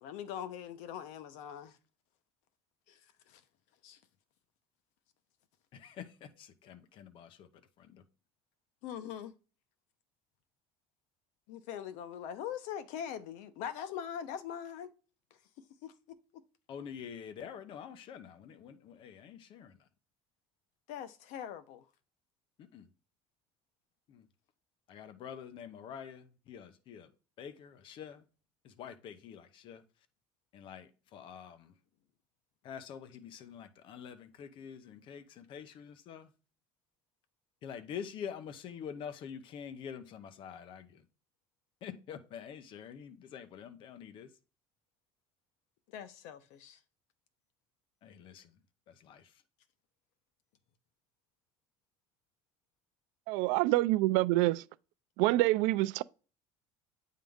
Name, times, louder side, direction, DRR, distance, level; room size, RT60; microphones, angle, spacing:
voice 1, 0.0-1.8 2.9-3.0 3.3-3.4 3.8-4.0 8.8-9.3 11.5-14.9 15.8-15.9 20.9-21.8 45.9-46.8, left 9 dB, 70° left, 0.8 m, -42 dB
voice 2, 5.7-8.0 16.7-19.8 22.6-22.9 24.1-24.3 24.9-27.1 27.4-28.2 28.6-29.8 30.5-31.7 32.6-36.3 37.6-41.1 41.8-44.3 48.0-48.5 48.9-49.4, left 8 dB, 40° left, 0.7 m, -46 dB
voice 3, 53.3-54.6 55.2-56.0, right 18 dB, 80° right, 0.4 m, -26 dB
8.8 x 3.7 x 3.6 m
cardioid pair, 165°, 12 cm